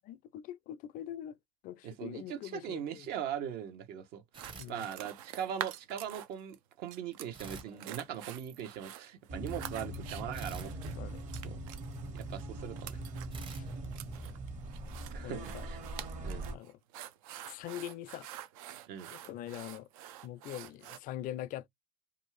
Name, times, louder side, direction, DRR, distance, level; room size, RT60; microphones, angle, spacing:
voice 1, 0.0-1.4 1.6-3.1 4.6-4.9 10.9-11.2 13.6-13.7 15.2-15.7 16.5-16.8 17.4-18.3 19.1-19.9 20.2-21.7, left 12 dB, 50° left, 0.4 m, -43 dB
voice 2, 1.8-10.9 11.4-11.6 12.1-13.0 15.1-15.8 16.2-16.4 18.9-19.1, right 9 dB, 65° right, 0.9 m, -40 dB
sound 1, 4.3-5.5 7.3-8.7 10.3-12.0 13.3-14.9, right 4 dB, 30° right, 0.9 m, -51 dB
sound 2, 4.3-6.5 6.9-21.0, right 12 dB, 80° right, 0.5 m, -47 dB
sound 3, 9.3-16.5, right 1 dB, 45° right, 1.4 m, -41 dB
2.6 x 2.4 x 3.1 m
supercardioid pair, 90°, 17 cm